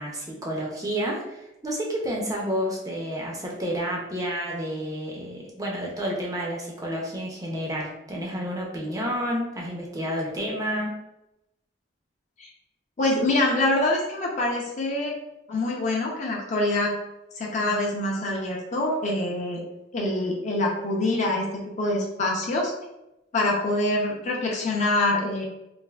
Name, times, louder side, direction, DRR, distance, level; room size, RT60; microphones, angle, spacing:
voice 1, 0.0-11.0, equal, 20° right, -2 dB, 0.5 m, -30 dB
voice 2, 13.0-15.2 15.5-17.0 17.4-19.6 19.9-22.7 23.3-25.4, left 2 dB, 35° left, -2 dB, 0.5 m, -25 dB
3.2 x 2.4 x 2.3 m, 0.90 s
head